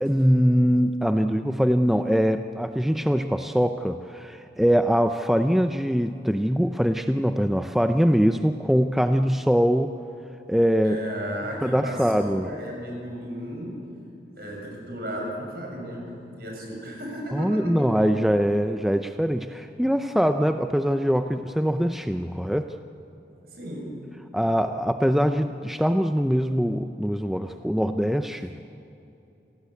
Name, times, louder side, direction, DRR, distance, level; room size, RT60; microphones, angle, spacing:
voice 1, 0.0-9.9 10.5-11.0 11.6-12.5 17.3-22.7 24.3-28.6, equal, ahead, 7 dB, 0.5 m, -23 dB
voice 2, 10.8-13.8 14.4-18.0 23.5-24.0, equal, 55° right, -1 dB, 7.3 m, -34 dB
27.5 x 18.0 x 8.4 m, 2.8 s
head